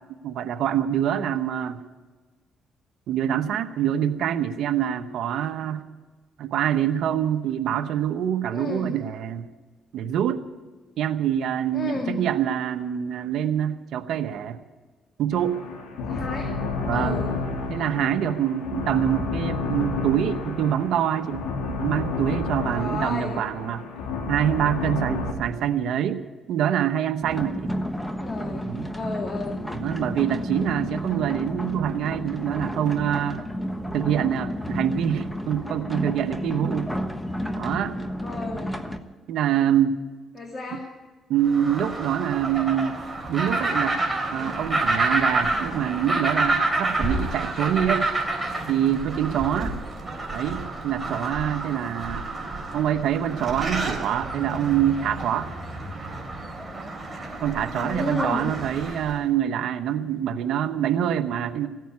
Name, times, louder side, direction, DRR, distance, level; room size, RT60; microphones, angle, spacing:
voice 1, 0.2-1.8 3.1-5.9 6.4-9.5 9.9-10.4 11.0-14.6 15.2-15.6 16.8-17.2 17.7-23.8 24.3-26.2 26.5-27.8 28.7-28.9 29.7-33.4 33.9-36.9 37.6-37.9 39.3-40.0 41.3-43.0 43.3-44.0 44.3-48.1 48.7-49.7 50.3-52.3 52.7-55.5 57.1-61.7, right 10 dB, 75° right, 10 dB, 1.0 m, -25 dB
voice 2, 8.5-9.0 11.7-12.2 16.1-16.5 16.9-17.4 22.7-23.4 27.9-29.6 38.2-38.8 40.3-40.9 49.4-49.8 57.7-58.5, left 3 dB, 40° left, 2 dB, 2.2 m, -33 dB
sound 1, 15.3-25.3, left 3 dB, 90° left, 3.0 m, -30 dB
sound 2, 27.2-39.0, equal, 5° left, 1.3 m, -31 dB
sound 3, 41.4-59.2, right 2 dB, 15° right, 3.8 m, -29 dB
16.5 x 9.3 x 9.5 m, 1.3 s
cardioid pair, 90°, 0 cm